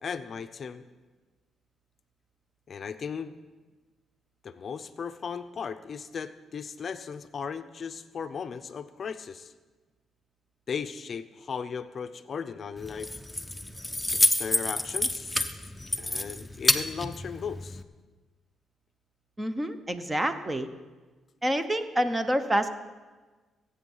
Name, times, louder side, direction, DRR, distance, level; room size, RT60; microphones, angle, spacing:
voice 1, 0.0-0.8 2.7-3.4 4.4-9.5 10.7-13.1 14.1-15.6 16.0-17.8, left 6 dB, 45° left, 10 dB, 0.5 m, -37 dB
Keys jangling, 12.8-17.8, left 2 dB, 10° left, 0.7 m, -28 dB
voice 2, 19.4-20.7 21.4-22.7, equal, 15° right, 10 dB, 0.9 m, -27 dB
16.5 x 8.5 x 5.5 m, 1.3 s
cardioid pair, 90°, 0 cm